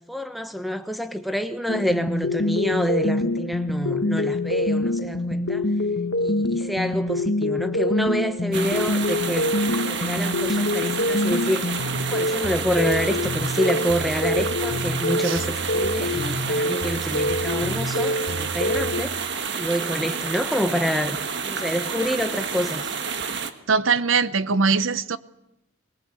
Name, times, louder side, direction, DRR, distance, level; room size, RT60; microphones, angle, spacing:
voice 1, 0.1-5.7 6.2-11.8 12.1-19.3 19.6-22.9, equal, ahead, 1.1 m, -27 dB
sound 1, 1.7-19.0, left 1 dB, 75° left, 1.4 m, -25 dB
sound 2, 8.5-23.5, right 5 dB, 60° right, 1.5 m, -29 dB
voice 2, 23.7-25.2, right 5 dB, 80° right, 0.8 m, -21 dB
21.5 x 19.5 x 8.3 m
head